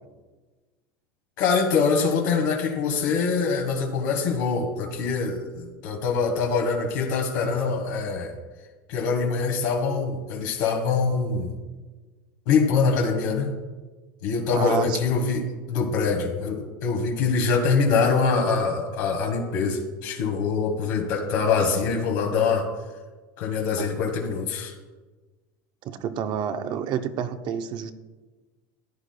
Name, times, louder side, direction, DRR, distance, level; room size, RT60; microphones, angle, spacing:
voice 1, 1.4-8.3 8.9-11.5 12.5-13.5 14.2-15.4 15.7-22.7 23.4-24.7, left 5 dB, 75° left, 2 dB, 1.6 m, -24 dB
voice 2, 14.5-15.2 23.8-23.9 25.8-27.9, right 7 dB, 50° right, 9 dB, 0.7 m, -29 dB
14.5 x 9.6 x 2.3 m, 1.3 s
supercardioid pair, 115°, 10 cm